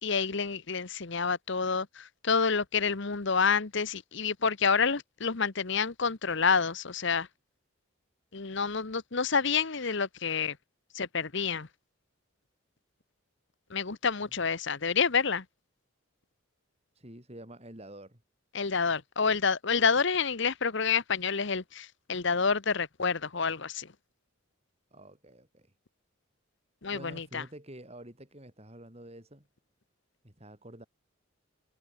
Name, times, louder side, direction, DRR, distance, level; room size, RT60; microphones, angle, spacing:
voice 1, 0.0-7.3 8.3-10.6 10.9-11.7 13.7-15.4 18.5-23.9 26.8-27.4, left 5 dB, 55° left, 1.1 m, -28 dB
voice 2, 16.9-18.2 24.9-25.7 26.9-29.5 30.2-30.9, right 1 dB, 30° right, 4.8 m, -48 dB
head